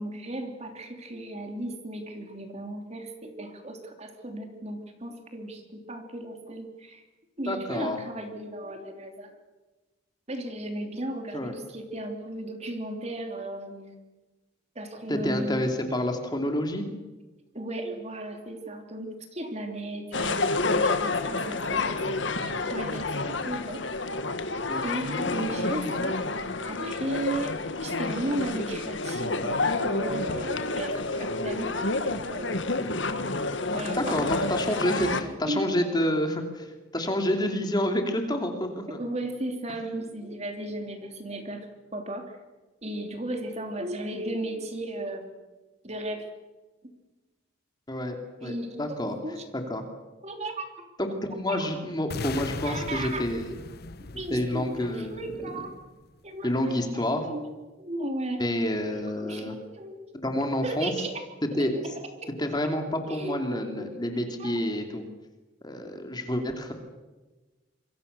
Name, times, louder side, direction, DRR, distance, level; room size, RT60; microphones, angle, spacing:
voice 1, 0.0-7.0 7.4-9.3 10.3-14.0 14.7-15.7 17.5-23.8 24.8-26.2 26.6-27.5 27.8-32.6 33.7-34.2 35.4-35.6 38.9-41.7 41.9-42.4 42.8-45.4 45.8-46.3 48.4-49.4 50.2-50.7 51.5-51.6 52.6-53.3 54.0-55.7 56.2-57.5 57.8-58.4 58.9-60.3 60.6-61.2 61.6-61.9 62.2-62.3 63.1-63.9 64.4-64.6, right 1 dB, 35° right, 4 dB, 3.2 m, -35 dB
voice 2, 7.5-8.0 11.3-11.5 15.1-16.9 24.6-24.9 25.1-25.3 34.0-36.7 36.9-39.0 47.9-48.2 48.4-48.5 48.8-49.2 49.5-49.8 51.0-53.6 54.3-55.7 56.4-57.2 58.4-59.6 60.2-60.9 61.5-61.7 62.4-65.0 65.6-66.7, left 1 dB, 20° left, 4 dB, 2.9 m, -28 dB
sound 1, 20.1-35.2, left 3 dB, 70° left, 1.8 m, -29 dB
sound 2, 52.1-56.1, left 3 dB, 55° left, 0.9 m, -39 dB
27.0 x 23.0 x 6.9 m, 1.2 s
head